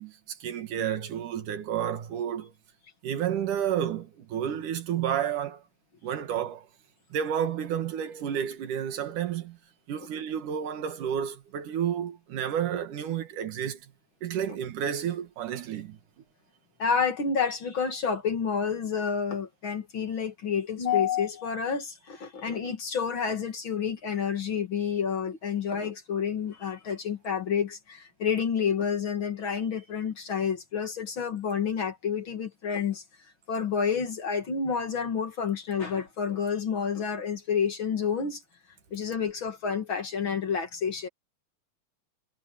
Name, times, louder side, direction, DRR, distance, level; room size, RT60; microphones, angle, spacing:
voice 1, 0.0-2.5 3.0-5.6 6.0-6.7 7.1-9.6 9.9-13.9 14.2-16.0, right 9 dB, 90° right, 3.3 m, -31 dB
voice 2, 16.8-33.0 33.5-38.4 38.9-41.1, left 6 dB, 45° left, 2.4 m, -29 dB
omnidirectional pair, 3.5 m